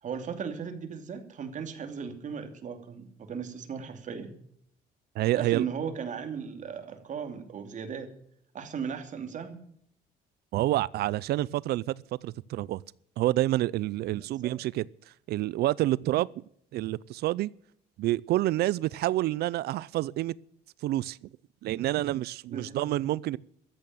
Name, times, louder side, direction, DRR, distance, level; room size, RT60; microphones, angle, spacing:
voice 1, 0.0-4.3 5.3-8.1 8.5-9.6 14.2-14.5 22.5-22.8, right 6 dB, 45° right, 2.9 m, -37 dB
voice 2, 5.2-5.7 10.5-11.9 12.2-12.8 13.2-14.9 15.3-16.4 16.7-17.5 18.0-20.3 20.8-21.3 21.6-23.4, right 15 dB, 70° right, 0.5 m, -28 dB
14.0 x 9.1 x 9.3 m
cardioid pair, 110°, 17 cm